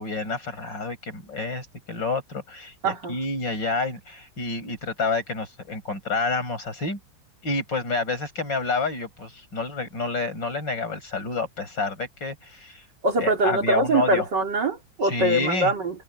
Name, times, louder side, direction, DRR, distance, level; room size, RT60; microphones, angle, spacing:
voice 1, 0.0-7.0 7.4-12.8 13.2-14.2 15.0-15.7, left 3 dB, 80° left, 7.8 m, -29 dB
voice 2, 2.8-3.2 13.0-16.0, right 2 dB, 70° right, 3.8 m, -23 dB
omnidirectional pair, 2.0 m